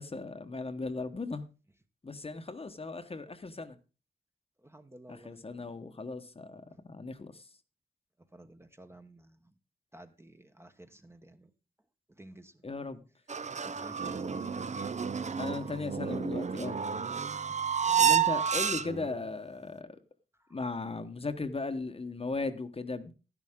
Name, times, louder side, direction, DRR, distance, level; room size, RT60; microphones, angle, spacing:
voice 1, 0.0-1.5 2.0-3.8 5.1-7.5 12.6-13.0 15.4-16.8 18.0-20.0 20.5-23.1, left 3 dB, 35° left, 1.1 m, -37 dB
voice 2, 4.6-5.7 6.7-6.8 8.3-9.5 9.9-11.5 12.1-12.6 13.6-14.4 14.7-15.0 17.8-18.5 20.3-20.6, right 1 dB, 15° right, 1.1 m, -53 dB
sound 1, 13.3-19.2, right 8 dB, 40° right, 0.6 m, -30 dB
12.0 x 11.0 x 3.6 m
wide cardioid pair, 95°, 17 cm